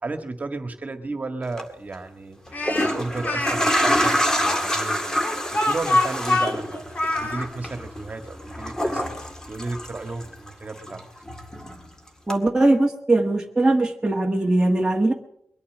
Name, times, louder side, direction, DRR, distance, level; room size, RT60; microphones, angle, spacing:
voice 1, 0.0-6.8 7.2-11.0, right 3 dB, 35° right, 7 dB, 1.8 m, -33 dB
sound 1, 1.4-1.6 2.5-10.5 10.8-11.9 12.3-12.4, equal, 15° left, 2.0 m, -26 dB
Speech, 2.5-3.6 4.5-7.5, left 2 dB, 40° left, 2.3 m, -25 dB
voice 2, 12.3-15.1, right 2 dB, 15° right, 0 dB, 1.5 m, -20 dB
22.5 x 8.7 x 7.4 m, 0.72 s
wide cardioid pair, 105°, 4 cm